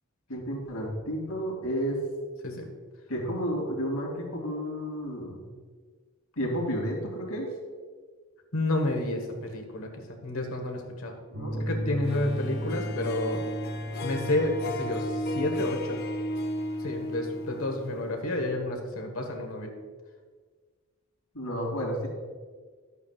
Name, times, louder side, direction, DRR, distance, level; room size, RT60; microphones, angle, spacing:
voice 1, 0.3-2.0 3.1-5.4 6.4-7.5 11.4-11.7 21.3-22.1, equal, 85° left, -2 dB, 2.9 m, -31 dB
voice 2, 8.5-11.2 11.6-13.4 14.0-16.0 16.8-19.7, left 1 dB, 70° left, 3 dB, 1.5 m, -30 dB
sound 1, 11.3-19.0, equal, 70° right, 1.4 m, -36 dB
Harp, 12.1-18.3, left 1 dB, 45° left, 0.5 m, -35 dB
13.0 x 8.3 x 2.5 m, 1.5 s
head